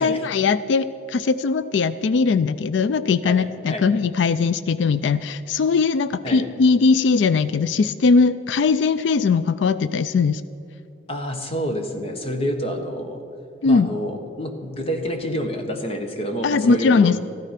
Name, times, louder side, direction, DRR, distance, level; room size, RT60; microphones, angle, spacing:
voice 1, 0.0-10.4 13.6-13.9 16.4-17.2, left 4 dB, 85° left, 15 dB, 0.4 m, -20 dB
voice 2, 3.2-3.9 6.2-6.5 11.1-13.2 13.6-17.2, equal, 35° left, 5 dB, 1.4 m, -28 dB
14.5 x 12.5 x 5.8 m, 2.6 s
head